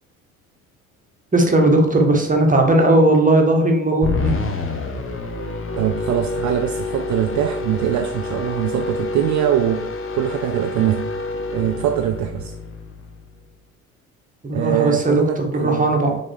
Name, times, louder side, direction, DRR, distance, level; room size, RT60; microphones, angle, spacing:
voice 1, 1.3-4.3 14.4-16.1, right 1 dB, 20° right, 2 dB, 1.6 m, -17 dB
sound 1, 4.0-13.4, left 3 dB, 30° left, 1.2 m, -28 dB
voice 2, 5.8-9.9 10.1-11.1 11.5-12.5 14.5-16.2, right 11 dB, 45° right, 7 dB, 0.5 m, -22 dB
6.2 x 3.9 x 4.8 m, 0.83 s
hypercardioid pair, 60°, 42 cm